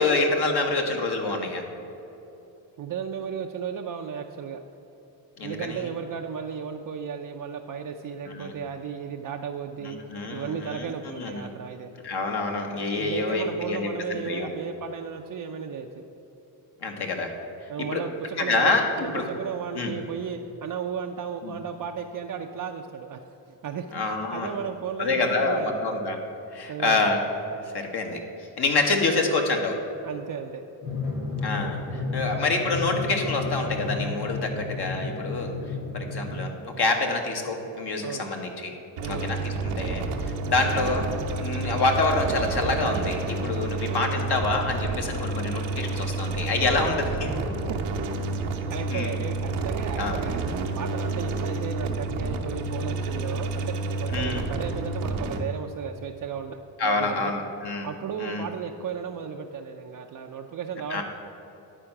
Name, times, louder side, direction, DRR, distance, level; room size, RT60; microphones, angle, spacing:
voice 1, 0.0-1.6 5.4-5.8 8.3-8.5 9.8-11.5 12.0-14.5 16.8-17.3 17.9-18.0 18.4-19.2 19.7-19.9 21.4-21.5 23.9-24.5 25.0-26.2 26.5-27.2 27.7-28.2 28.6-29.8 31.4-35.5 35.9-38.7 39.0-41.1 41.4-47.6 48.9-49.2 50.0-50.2 54.1-54.4 56.8-57.9 58.2-58.5 60.9-61.0, left 3 dB, 50° left, 3 dB, 1.3 m, -27 dB
voice 2, 2.8-4.6 5.4-10.0 10.3-11.9 12.9-16.0 17.7-23.2 23.6-23.9 24.3-25.8 26.7-27.1 30.0-30.6 38.0-38.2 39.0-39.3 47.7-47.8 48.5-50.4 50.8-57.4 57.8-61.0, right 7 dB, 45° right, 3 dB, 0.5 m, -34 dB
Drum, 30.8-36.4, left 3 dB, 90° left, 1.5 m, -32 dB
sound 1, 39.0-55.4, right 3 dB, 85° right, 1.0 m, -29 dB
10.0 x 4.4 x 5.9 m, 2.9 s
supercardioid pair, 55°, 49 cm